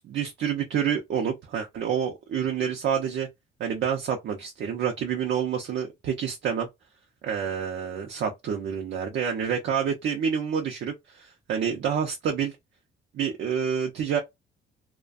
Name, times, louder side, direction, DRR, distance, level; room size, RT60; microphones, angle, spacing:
voice 1, 0.0-3.3 3.6-6.7 7.2-12.6 13.1-14.2, right 7 dB, 65° right, 0.6 m, -28 dB
2.4 x 2.2 x 2.3 m
cardioid pair, 90°, 20 cm